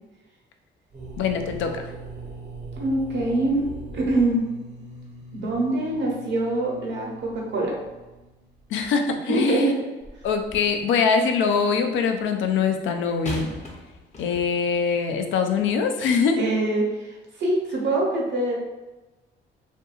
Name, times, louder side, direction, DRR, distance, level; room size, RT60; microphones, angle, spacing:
sound 1, 0.9-8.6, right 3 dB, 35° right, 0.7 m, -41 dB
voice 1, 1.2-1.7 8.7-9.6 10.2-13.5 14.2-16.4, left 5 dB, 75° left, 5 dB, 0.4 m, -23 dB
voice 2, 2.8-3.6 3.9-4.4 5.3-7.7 9.1-9.8 16.4-18.5, right 2 dB, 65° right, -2 dB, 0.9 m, -24 dB
sound 2, 10.0-10.8 13.2-14.8 15.6-15.7, left 1 dB, 35° left, 0.7 m, -38 dB
2.7 x 2.6 x 2.3 m, 1.1 s
cardioid pair, 90°, 20 cm